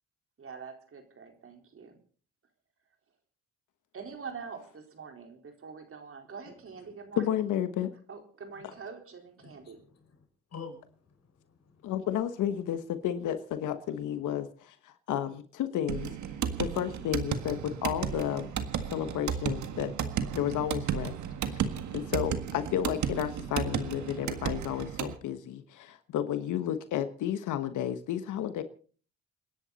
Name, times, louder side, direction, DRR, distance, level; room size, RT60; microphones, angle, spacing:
voice 1, 0.4-2.0 3.9-7.3 8.1-9.8, right 5 dB, 45° right, 4 dB, 4.3 m, -45 dB
voice 2, 7.2-7.9 11.8-16.1 16.6-18.5 18.9-19.9 20.3-21.1 21.5-21.6 21.9-28.6, left 10 dB, 80° left, 10 dB, 1.3 m, -32 dB
voice 3, 9.4-10.2 10.5-11.9, left 5 dB, 60° left, 4 dB, 5.7 m, -48 dB
sound 1, 15.9-25.2, right 8 dB, 70° right, 1.8 m, -34 dB
28.5 x 10.5 x 4.2 m, 0.42 s
cardioid pair, 90°, 30 cm